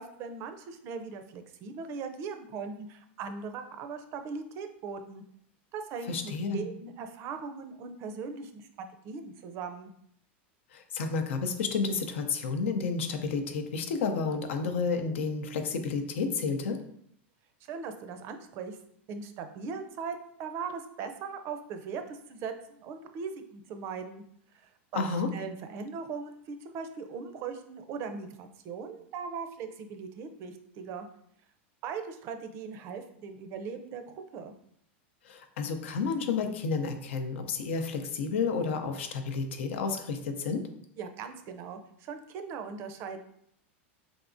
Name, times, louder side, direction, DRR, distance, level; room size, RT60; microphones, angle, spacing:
voice 1, 0.0-5.2 5.7-9.9 17.6-18.8 19.1-24.2 24.6-31.1 31.8-34.5 41.0-43.2, right 5 dB, 40° right, 7 dB, 0.5 m, -39 dB
voice 2, 6.1-6.6 10.7-16.8 24.9-25.3 35.2-40.6, left 5 dB, 80° left, 6 dB, 0.6 m, -31 dB
3.9 x 3.5 x 2.5 m, 0.69 s
supercardioid pair, 135°, 7 cm